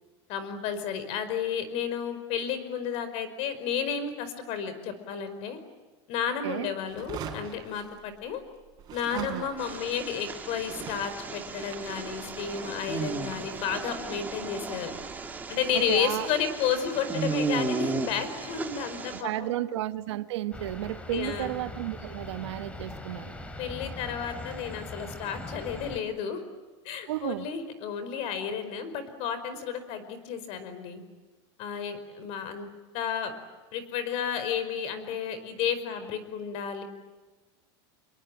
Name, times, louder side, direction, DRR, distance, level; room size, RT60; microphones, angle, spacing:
voice 1, 0.3-5.6 6.1-8.4 8.9-14.9 15.5-19.6 21.1-21.5 23.6-26.4 26.8-31.0 31.6-33.3 33.7-36.8, left 7 dB, 45° left, 11 dB, 5.0 m, -32 dB
sound 1, 6.9-8.5 8.8-16.0, right 6 dB, 30° right, 6.0 m, -45 dB
voice 2, 9.1-9.5 15.7-16.3 19.2-23.4 27.1-27.5, right 14 dB, 80° right, 11 dB, 1.4 m, -33 dB
sound 2, 9.6-19.2, right 4 dB, 10° right, 2.7 m, -35 dB
sound 3, 20.5-26.0, left 2 dB, 10° left, 2.7 m, -41 dB
28.0 x 22.5 x 9.0 m, 1.3 s
supercardioid pair, 160°, 15 cm